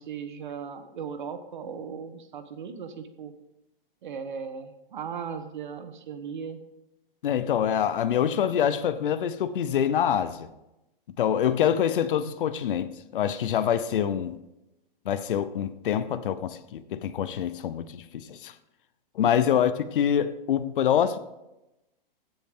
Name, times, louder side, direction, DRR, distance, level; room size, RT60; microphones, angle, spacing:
voice 1, 0.0-3.3 4.0-6.6 19.2-19.3, right 6 dB, 55° right, 9 dB, 1.2 m, -37 dB
voice 2, 7.2-10.5 11.2-14.4 15.1-18.5 19.2-21.2, left 9 dB, 65° left, 12 dB, 0.7 m, -25 dB
15.5 x 7.2 x 3.7 m, 0.93 s
hypercardioid pair, 180°, 29 cm